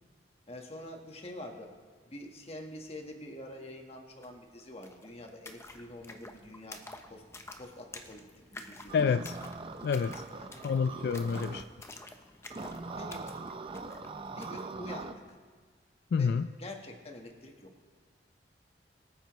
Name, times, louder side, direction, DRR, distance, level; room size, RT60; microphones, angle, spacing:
voice 1, 0.5-1.7 2.1-6.8 7.1-7.2 7.6-8.3 8.5-8.9 10.4-10.7 11.3-11.6 13.0-13.3 14.3-15.4 16.1-17.7, left 1 dB, 35° left, 2 dB, 1.5 m, -46 dB
sound 1, 4.2-4.3 4.5-14.7, left 2 dB, 15° left, 0.8 m, -50 dB
voice 2, 8.9-9.3 9.8-10.2 10.6-11.6 16.1-16.5, left 6 dB, 65° left, 11 dB, 0.3 m, -28 dB
sound 2, 8.9-11.6 12.5-15.1, right 3 dB, 30° right, 0.6 m, -41 dB
23.0 x 9.0 x 3.1 m, 1.5 s
head